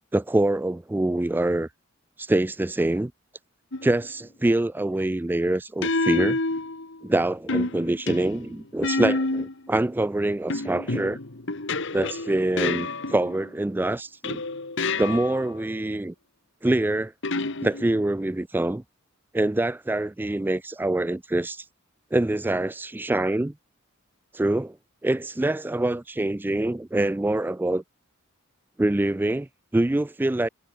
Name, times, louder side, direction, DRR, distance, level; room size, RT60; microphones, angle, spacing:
voice 1, 0.0-1.7 2.2-3.1 3.8-6.4 7.0-11.2 11.9-14.4 15.0-16.1 16.6-17.1 17.6-18.8 19.3-21.6 22.1-23.5 24.3-24.8 25.0-27.8 28.8-30.5, right 1 dB, 10° right, 0.3 m, -25 dB
sound 1, 3.7-4.1 5.8-7.1 7.5-9.7 10.5-13.5 14.2-15.5 17.2-18.1, left 3 dB, 60° left, 1.9 m, -29 dB
head